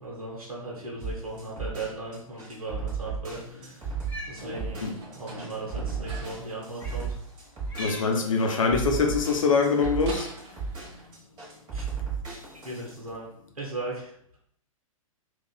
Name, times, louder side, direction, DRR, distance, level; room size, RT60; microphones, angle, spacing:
voice 1, 0.0-3.9 4.3-7.2 10.6-11.0 11.7-11.9 12.6-13.3 13.5-14.4, right 2 dB, 80° right, -3 dB, 0.9 m, -38 dB
sound 1, 1.0-13.0, right 5 dB, 25° right, 1.1 m, -34 dB
Cat, 3.9-4.4 5.5-5.6 6.7-7.1 7.6-8.1 9.1-9.5, equal, 10° left, 0.6 m, -41 dB
sound 2, 4.1-11.1, right 2 dB, 50° right, 1.0 m, -45 dB
voice 2, 7.8-10.3 10.9-11.1, left 4 dB, 70° left, 3 dB, 0.6 m, -24 dB
3.6 x 2.4 x 2.2 m, 0.68 s
figure-of-eight pair, 110°, 18 cm